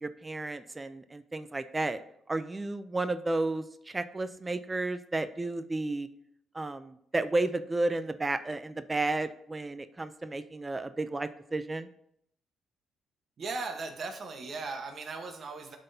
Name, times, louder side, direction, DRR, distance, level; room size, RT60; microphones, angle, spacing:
voice 1, 0.0-2.0 2.3-6.1 6.5-11.9, right 2 dB, 20° right, 11 dB, 0.4 m, -32 dB
voice 2, 13.4-15.8, right 3 dB, 50° right, 5 dB, 1.0 m, -37 dB
11.5 x 3.9 x 2.7 m, 0.73 s
cardioid pair, 90°, 0 cm